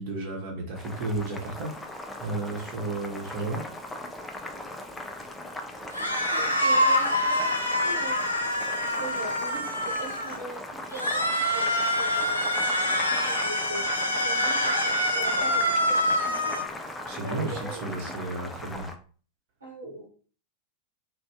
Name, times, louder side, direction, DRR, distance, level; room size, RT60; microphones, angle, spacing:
voice 1, 0.0-1.8 2.2-3.6 17.0-18.9, right 2 dB, 45° right, 0 dB, 1.0 m, -33 dB
Boiling, 0.7-19.0, left 1 dB, 10° left, 0.4 m, -39 dB
sound 1, 5.9-10.4 10.9-16.6, left 1 dB, 90° left, 0.5 m, -26 dB
voice 2, 5.9-8.2 8.5-12.6 13.1-16.6 17.1-18.1 19.6-20.1, right 2 dB, 80° right, -3 dB, 0.9 m, -42 dB
2.6 x 2.3 x 3.3 m, 0.41 s
figure-of-eight pair, 90°, 0 cm